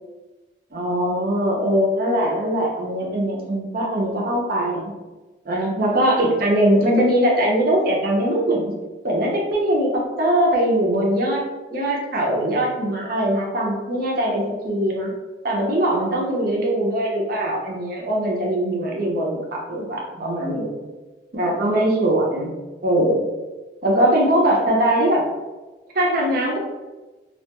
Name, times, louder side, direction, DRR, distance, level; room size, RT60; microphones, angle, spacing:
voice 1, 0.7-4.9 5.5-8.7 9.0-15.1 15.4-20.8 21.3-22.5 22.8-23.3 23.8-25.2 25.9-26.6, right 1 dB, 50° right, -2 dB, 0.5 m, -21 dB
2.3 x 2.2 x 2.8 m, 1.2 s
head